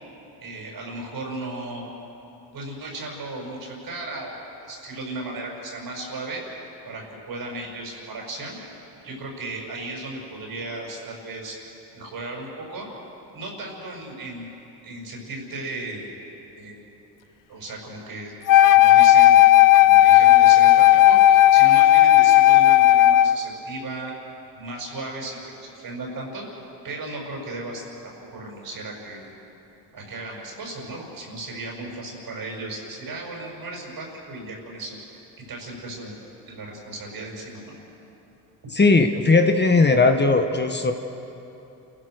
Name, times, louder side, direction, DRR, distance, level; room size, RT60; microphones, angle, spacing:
voice 1, 0.4-1.9 2.5-6.4 6.8-8.6 9.0-11.6 11.9-12.9 13.3-14.5 14.8-16.1 16.6-16.8 17.5-18.3 18.7-19.4 19.8-24.1 24.6-26.5 26.8-29.3 29.9-35.0 35.5-36.2 36.5-37.7, right 2 dB, 55° right, 0 dB, 6.9 m, -35 dB
Wind instrument woodwind instrument, 18.5-23.4, left 14 dB, 50° left, 0.6 m, -13 dB
voice 2, 38.7-40.9, left 3 dB, 25° left, 5 dB, 1.5 m, -18 dB
29.0 x 16.0 x 6.5 m, 3.0 s
supercardioid pair, 75°, 43 cm